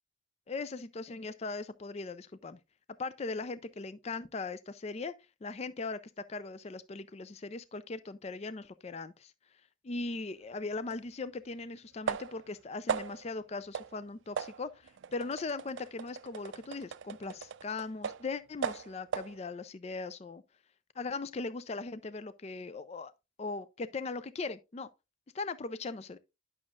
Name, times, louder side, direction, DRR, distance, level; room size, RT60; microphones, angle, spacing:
voice 1, 0.5-2.6 3.0-5.1 5.4-9.3 9.8-20.4 21.0-23.1 23.4-24.9 25.3-26.2, left 3 dB, 30° left, 0.4 m, -39 dB
sound 1, 10.9-11.0 12.1-12.5 12.9-13.3 13.7-14.0 14.4-18.3 18.6-19.4, right 6 dB, 60° right, 0.4 m, -38 dB
10.5 x 6.3 x 2.4 m
head